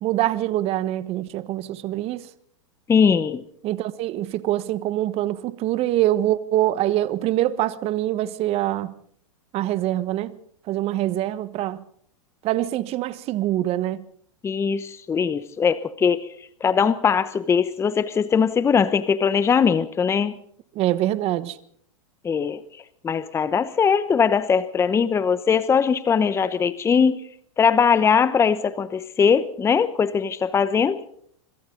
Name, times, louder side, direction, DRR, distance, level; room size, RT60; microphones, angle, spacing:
voice 1, 0.0-2.3 3.6-8.9 9.5-10.3 10.7-11.8 12.4-14.0 20.7-21.6, right 14 dB, 35° right, 1.4 m, -24 dB
voice 2, 2.9-3.4 14.4-16.3 16.6-20.3 22.2-22.6 23.0-27.2 27.6-31.0, left 6 dB, 15° left, 1.0 m, -20 dB
26.0 x 25.5 x 4.0 m
hypercardioid pair, 120°, 17 cm